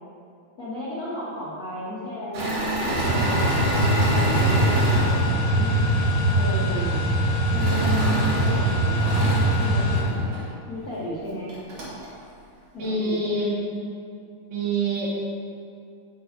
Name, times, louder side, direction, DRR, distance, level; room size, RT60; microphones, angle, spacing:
voice 1, 0.6-5.7 6.4-7.0 7.5-9.2 9.6-10.3 10.7-11.5 12.7-13.4, left 1 dB, 85° left, -8 dB, 0.8 m, -34 dB
Engine / Mechanisms, 2.3-6.1 7.5-10.5 11.1-11.2 11.5-12.1, right 1 dB, 55° right, 2.5 m, -28 dB
sound 1, 2.9-10.0, right 1 dB, 85° right, 3.9 m, -22 dB
voice 2, 12.8-13.6 14.5-15.1, right 2 dB, 70° right, -6 dB, 3.0 m, -26 dB
9.3 x 8.0 x 2.6 m, 2.5 s
omnidirectional pair, 3.7 m